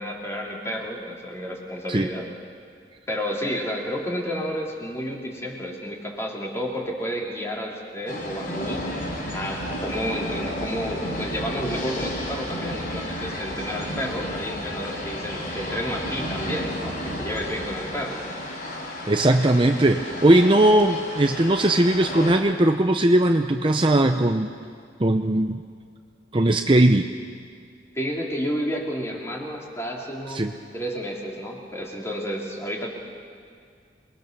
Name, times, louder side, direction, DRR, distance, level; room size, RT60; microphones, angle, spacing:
voice 1, 0.0-2.3 3.1-8.9 9.3-18.2 27.9-32.9, equal, 15° left, -2 dB, 3.4 m, -31 dB
sound 1, 8.1-22.3, left 1 dB, 50° left, 4.6 m, -32 dB
voice 2, 19.1-24.5 25.0-25.6 26.3-27.1 30.3-30.5, right 1 dB, 25° right, 5 dB, 0.7 m, -19 dB
28.0 x 21.5 x 6.8 m, 2.2 s
head